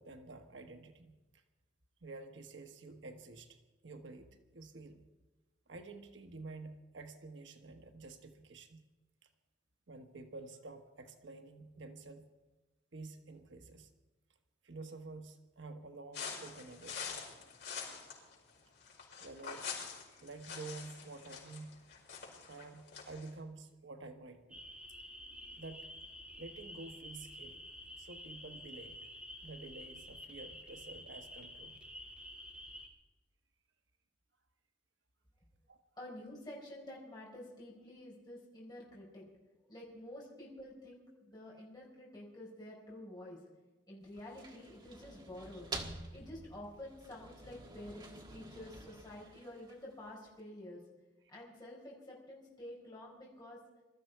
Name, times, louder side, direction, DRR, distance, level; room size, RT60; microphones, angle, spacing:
voice 1, 0.0-1.4 2.0-5.0 5.7-8.8 9.2-9.3 9.9-12.3 12.9-13.9 14.6-17.4 19.2-19.7 20.2-21.8 22.4-24.6 25.5-25.9 26.4-27.6 28.0-29.0 29.4-31.8 35.7-35.8, right 3 dB, 80° right, 6 dB, 1.2 m, -50 dB
sound 1, 16.1-23.3, left 6 dB, 65° left, 5.4 m, -45 dB
sound 2, 24.5-32.9, equal, 5° right, 2.5 m, -50 dB
voice 2, 36.0-39.3 39.7-43.4 43.9-45.7 46.1-50.8 51.3-53.6, left 1 dB, 20° left, -4 dB, 4.5 m, -49 dB
sound 3, 44.0-50.1, right 2 dB, 25° right, 1.6 m, -48 dB
22.5 x 13.5 x 4.6 m, 1.2 s
head